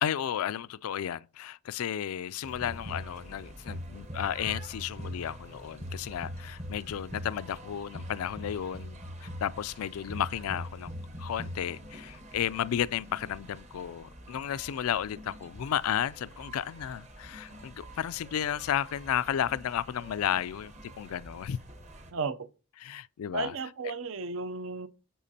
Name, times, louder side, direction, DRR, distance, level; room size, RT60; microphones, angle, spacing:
voice 1, 0.0-21.6 22.8-23.6 23.8-23.9, left 10 dB, 85° left, 0.3 m, -33 dB
sound 1, 2.4-22.1, equal, 30° right, 0.9 m, -44 dB
voice 2, 22.1-22.5 23.3-24.9, right 4 dB, 65° right, 0.5 m, -34 dB
10.0 x 7.2 x 2.8 m
head